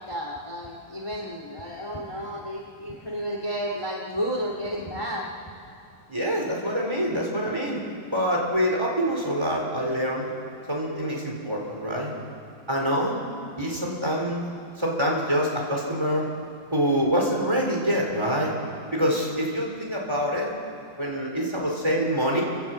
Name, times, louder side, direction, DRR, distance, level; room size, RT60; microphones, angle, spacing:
voice 1, 0.0-5.5 10.8-11.2, equal, 15° left, -1 dB, 1.1 m, -32 dB
voice 2, 6.1-7.8 8.1-10.3 10.7-12.1 12.7-13.2 13.6-14.4 14.8-16.2 16.7-18.5 18.9-20.5 21.0-22.4, equal, 5° right, -2 dB, 3.8 m, -25 dB
28.0 x 16.5 x 7.9 m, 2.6 s
omnidirectional pair, 4.1 m